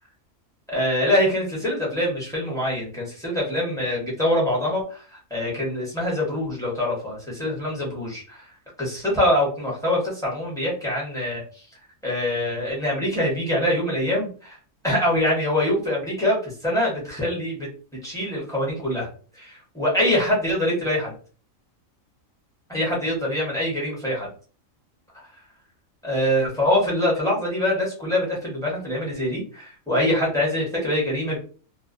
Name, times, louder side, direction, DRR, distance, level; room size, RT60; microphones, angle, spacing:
voice 1, 0.7-5.0 5.3-8.4 8.8-11.4 12.0-14.6 14.8-17.7 18.0-19.1 19.4-21.1 22.7-24.3 26.0-31.4, left 1 dB, 5° left, -5 dB, 0.8 m, -24 dB
2.4 x 2.1 x 2.5 m, 0.39 s
omnidirectional pair, 1.4 m